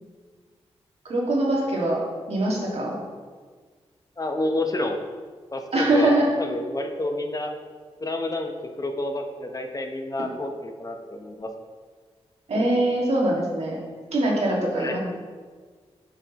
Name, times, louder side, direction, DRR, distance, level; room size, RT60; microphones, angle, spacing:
voice 1, 1.0-2.0 2.3-2.9 5.7-6.3 12.5-13.8 14.1-15.0, right 1 dB, 70° right, -4 dB, 2.0 m, -22 dB
voice 2, 4.2-5.0 5.5-7.5 8.0-8.5 8.8-11.5 14.8-15.0, left 2 dB, 35° left, 4 dB, 0.8 m, -29 dB
8.3 x 5.0 x 3.0 m, 1.5 s
cardioid pair, 60°, 11 cm